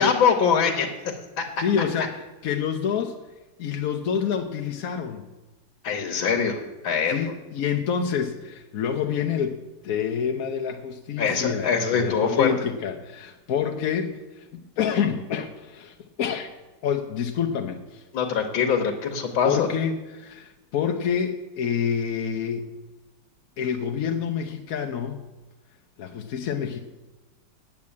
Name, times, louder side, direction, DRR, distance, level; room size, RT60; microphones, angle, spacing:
voice 1, 0.0-1.4 5.8-6.6 6.8-7.2 11.2-12.5 18.1-19.7, left 6 dB, 80° left, 1 dB, 1.9 m, -23 dB
voice 2, 1.6-3.2 3.6-5.2 7.1-14.5 14.8-16.5 16.8-18.0 19.4-22.7 23.6-25.2 26.0-26.8, left 7 dB, 60° left, 4 dB, 1.0 m, -27 dB
8.8 x 8.5 x 8.4 m, 1.2 s
omnidirectional pair, 2.2 m